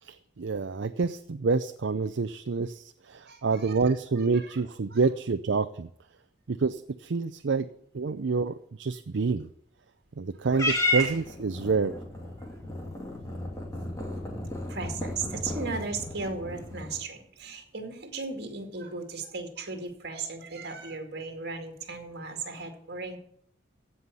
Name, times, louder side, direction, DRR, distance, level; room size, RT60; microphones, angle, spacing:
voice 1, 0.0-5.9 6.5-7.7 7.9-9.5 10.2-11.9, right 4 dB, 70° right, 10 dB, 0.5 m, -28 dB
voice 2, 3.3-3.9 4.3-4.6 4.9-5.0 14.7-23.2, right 4 dB, 55° right, 4 dB, 2.3 m, -36 dB
Purr / Meow, 10.5-17.0, left 1 dB, 15° left, 2.4 m, -33 dB
15.5 x 5.6 x 8.2 m, 0.71 s
head